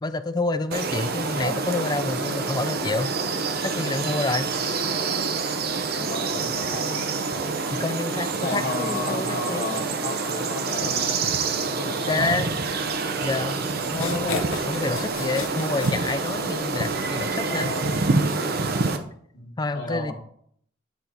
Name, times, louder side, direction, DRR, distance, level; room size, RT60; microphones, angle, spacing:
voice 1, 0.0-3.1 3.6-4.5 7.7-9.7 12.1-12.5 13.2-17.7 19.6-20.1, left 3 dB, 20° left, 11 dB, 0.4 m, -28 dB
sound 1, 0.7-19.0, right 4 dB, 50° right, 0.7 m, -27 dB
voice 2, 5.9-7.0 8.3-11.1 11.7-12.3 17.5-18.2 19.3-20.1, left 2 dB, 55° left, -5 dB, 1.8 m, -33 dB
sound 2, 13.9-16.7, left 4 dB, 75° left, 0.8 m, -33 dB
8.6 x 4.5 x 4.0 m, 0.65 s
head